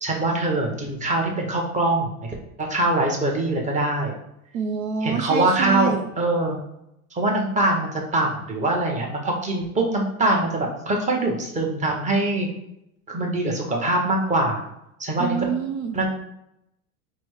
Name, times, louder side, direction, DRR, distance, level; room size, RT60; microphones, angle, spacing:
voice 1, 0.0-2.1 2.6-4.2 5.0-6.6 7.1-12.5 13.1-14.7 15.0-15.4 15.9-16.1, right 2 dB, 15° right, 0 dB, 0.9 m, -23 dB
voice 2, 4.5-6.1 15.2-16.0, right 6 dB, 70° right, 6 dB, 0.6 m, -26 dB
4.3 x 2.1 x 4.6 m, 0.81 s
hypercardioid pair, 100°, 44 cm